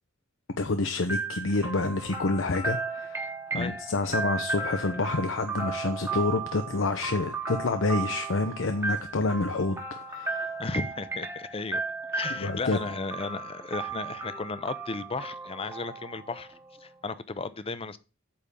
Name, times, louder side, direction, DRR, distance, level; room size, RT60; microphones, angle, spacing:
voice 1, 0.6-9.8 10.1-10.5 12.4-12.8, left 3 dB, 65° left, 0.7 m, -28 dB
sound 1, 1.1-16.9, right 4 dB, 15° right, 1.1 m, -35 dB
voice 2, 10.6-11.8 12.1-16.5 16.8-18.0, left 3 dB, 30° left, 0.6 m, -34 dB
8.7 x 3.6 x 6.8 m
head